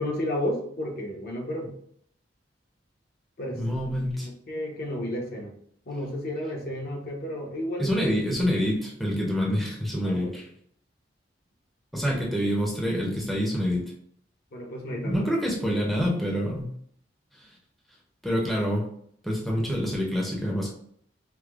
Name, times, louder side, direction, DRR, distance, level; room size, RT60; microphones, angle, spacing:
voice 1, 0.0-1.7 3.4-3.6 4.2-5.5 5.9-8.1 10.0-10.3 14.5-15.2, left 1 dB, 55° left, 0 dB, 0.8 m, -32 dB
voice 2, 3.6-4.3 7.8-10.5 11.9-13.8 15.0-16.7 18.2-18.8 19.2-20.7, equal, ahead, -3 dB, 0.6 m, -26 dB
4.8 x 2.0 x 2.4 m, 0.66 s
head